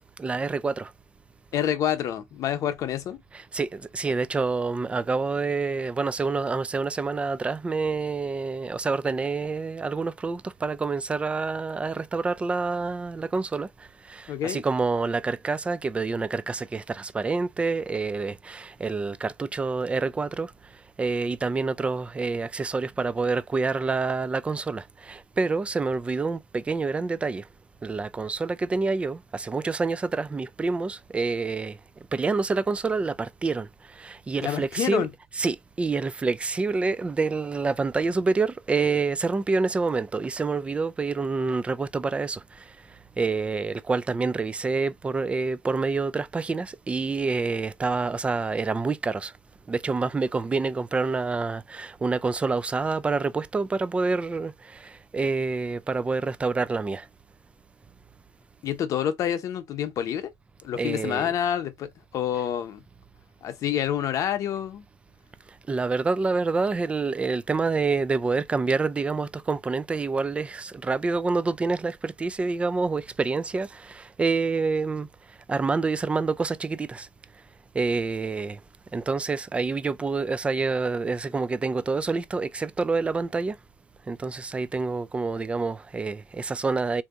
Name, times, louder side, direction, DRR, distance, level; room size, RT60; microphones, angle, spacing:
voice 1, 0.2-0.9 3.5-13.7 14.1-20.5 21.0-27.4 27.8-31.8 32.1-33.7 34.0-35.1 35.4-42.4 43.2-49.3 49.7-57.0 60.8-61.3 65.7-75.1 75.5-77.1 77.7-78.6 78.9-83.6 84.1-87.0, right 4 dB, 15° right, 0.3 m, -27 dB
voice 2, 1.5-3.2 14.3-14.6 34.4-35.1 58.6-60.3 60.6-62.8 63.4-64.8, left 10 dB, 55° left, 0.8 m, -28 dB
3.4 x 2.7 x 2.4 m
supercardioid pair, 95°, 7 cm